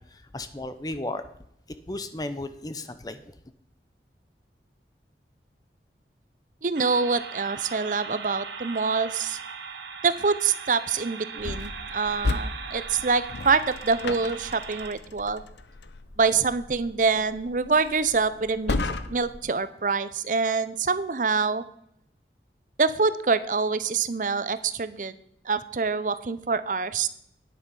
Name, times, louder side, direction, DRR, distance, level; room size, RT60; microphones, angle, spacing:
voice 1, 0.1-1.2 1.9-3.3, left 2 dB, 20° left, 11 dB, 0.6 m, -34 dB
voice 2, 6.6-9.4 10.0-15.4 16.2-18.8 19.1-21.6 22.8-25.2 25.4-27.1, right 4 dB, 45° right, 14 dB, 0.6 m, -25 dB
sound 1, 6.7-14.9, right 5 dB, 90° right, 1.3 m, -39 dB
sound 2, 11.4-19.4, left 3 dB, 80° left, 0.7 m, -35 dB
9.9 x 8.0 x 5.4 m, 0.72 s
head